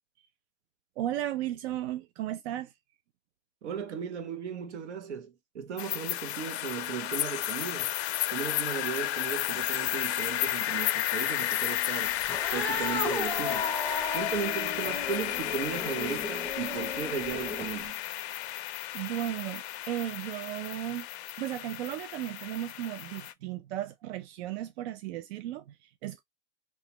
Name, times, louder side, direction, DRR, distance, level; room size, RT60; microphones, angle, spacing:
voice 1, 1.0-2.7 18.9-21.1 21.4-26.2, right 13 dB, 70° right, 0.5 m, -35 dB
voice 2, 3.6-7.9 8.3-12.2 12.5-13.8 14.1-18.0, right 7 dB, 85° right, 0.9 m, -36 dB
sound 1, 5.8-23.3, left 14 dB, 70° left, 0.5 m, -33 dB
Cat, 12.2-17.9, left 3 dB, 5° left, 0.5 m, -35 dB
3.1 x 2.2 x 2.8 m
hypercardioid pair, 130°, 34 cm